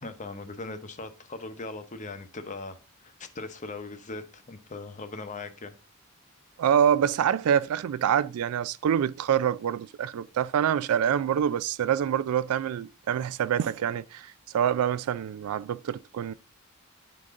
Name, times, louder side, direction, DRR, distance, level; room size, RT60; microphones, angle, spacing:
voice 1, 0.0-5.7, left 3 dB, 35° left, 0.8 m, -39 dB
voice 2, 6.6-16.3, right 9 dB, 80° right, 0.3 m, -26 dB
10.5 x 3.9 x 3.7 m
head